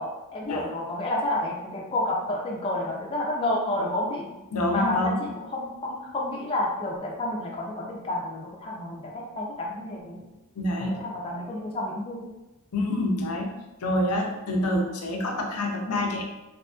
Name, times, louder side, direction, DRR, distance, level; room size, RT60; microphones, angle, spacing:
voice 1, 0.0-4.4 4.7-10.2 10.9-12.3, left 1 dB, 25° left, -2 dB, 0.4 m, -30 dB
voice 2, 4.5-5.2 10.6-11.0 12.7-16.2, left 1 dB, 80° left, 1 dB, 0.5 m, -27 dB
2.7 x 2.4 x 2.3 m, 1.0 s
head